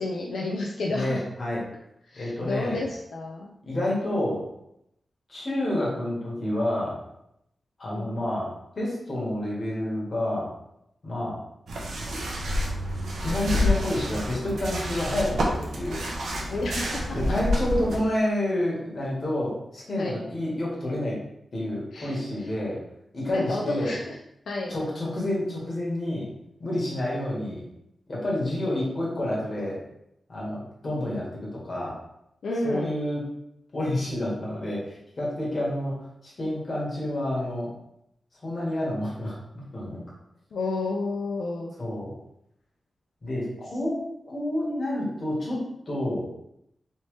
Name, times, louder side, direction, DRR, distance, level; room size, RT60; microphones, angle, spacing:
voice 1, 0.0-1.2 2.1-3.5 7.9-8.2 16.5-17.4 20.0-20.2 21.9-22.2 23.3-24.2 24.5-24.7 32.4-32.9 40.5-41.7, left 2 dB, 85° left, -1 dB, 0.4 m, -31 dB
voice 2, 0.9-1.6 2.1-2.8 3.6-4.4 5.3-7.0 7.8-8.5 8.7-10.5 11.0-11.4 13.2-16.0 17.1-21.2 21.5-22.8 23.1-24.0 24.7-26.3 26.6-27.6 28.1-29.8 30.3-31.9 32.6-33.2 33.7-37.7 38.4-40.0 41.8-42.1 43.2-46.3, left 1 dB, 45° left, -5 dB, 1.4 m, -29 dB
sound 1, 11.7-18.0, left 1 dB, 90° right, 0.7 m, -28 dB
3.2 x 2.8 x 3.1 m, 0.80 s
wide cardioid pair, 110°, 0 cm